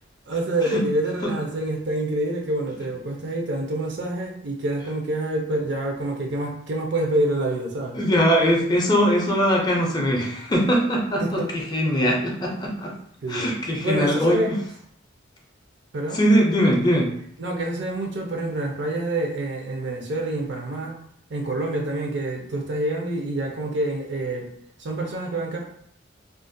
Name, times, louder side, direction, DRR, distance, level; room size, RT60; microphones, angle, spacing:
voice 1, 0.3-8.0 11.2-11.5 13.2-13.5 13.8-14.5 15.9-16.2 17.4-21.0 21.3-24.5 24.8-25.6, right 1 dB, 65° right, 1 dB, 0.5 m, -27 dB
voice 2, 8.0-12.9 13.3-14.6 16.1-17.1, equal, 20° left, -1 dB, 0.4 m, -21 dB
2.4 x 2.1 x 2.5 m, 0.65 s
head